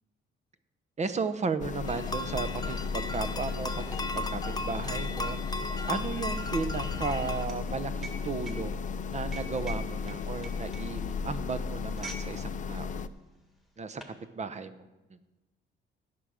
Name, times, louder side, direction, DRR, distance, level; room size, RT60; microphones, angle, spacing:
voice 1, 1.0-5.4 5.9-8.8 9.1-13.1 13.8-14.9, right 4 dB, 35° right, 11 dB, 0.8 m, -35 dB
sound 1, 1.6-13.1, left 5 dB, 40° left, 0.5 m, -35 dB
sound 2, 1.9-7.5, left 1 dB, 20° left, 0.9 m, -37 dB
sound 3, 3.4-12.3 12.6-12.9 13.6-14.2, right 3 dB, ahead, 1.8 m, -47 dB
16.5 x 6.2 x 5.0 m, 1.1 s
cardioid pair, 90°, 20 cm